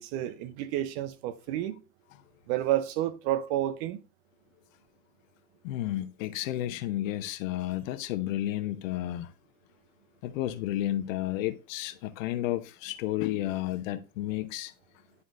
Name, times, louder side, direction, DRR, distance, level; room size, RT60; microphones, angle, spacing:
voice 1, 0.0-1.8 2.5-4.0, right 13 dB, 45° right, 0.8 m, -30 dB
voice 2, 5.6-9.3 10.2-14.7, left 14 dB, 55° left, 1.0 m, -32 dB
11.5 x 4.1 x 2.5 m
hypercardioid pair, 105°, 47 cm